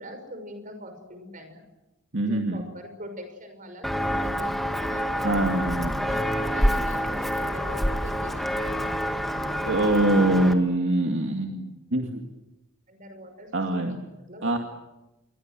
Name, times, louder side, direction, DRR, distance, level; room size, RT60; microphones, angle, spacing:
voice 1, 0.0-1.6 2.2-5.5 6.0-8.5 12.9-14.6, equal, 40° right, 7 dB, 6.0 m, -43 dB
voice 2, 2.1-2.6 5.2-5.9 9.6-12.2 13.5-14.0 14.4-14.6, right 1 dB, 60° right, 3 dB, 2.3 m, -24 dB
Walk footsteps, 3.8-10.5, equal, ahead, 1.9 m, -27 dB
28.5 x 23.0 x 7.7 m, 0.97 s
head